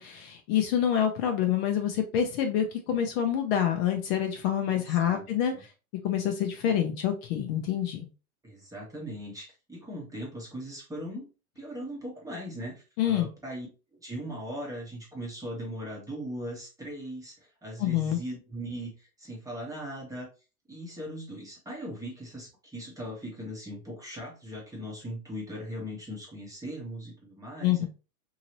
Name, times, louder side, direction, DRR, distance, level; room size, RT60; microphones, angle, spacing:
voice 1, 0.0-5.5 6.0-8.1 13.0-13.3 17.8-18.2 27.6-27.8, left 9 dB, 45° left, 5 dB, 0.6 m, -27 dB
voice 2, 4.8-5.2 5.5-5.6 8.4-11.3 11.6-13.7 14.0-20.3 20.7-27.8, equal, 10° right, -2 dB, 0.9 m, -39 dB
2.8 x 2.7 x 2.9 m, 0.31 s
supercardioid pair, 135°, 43 cm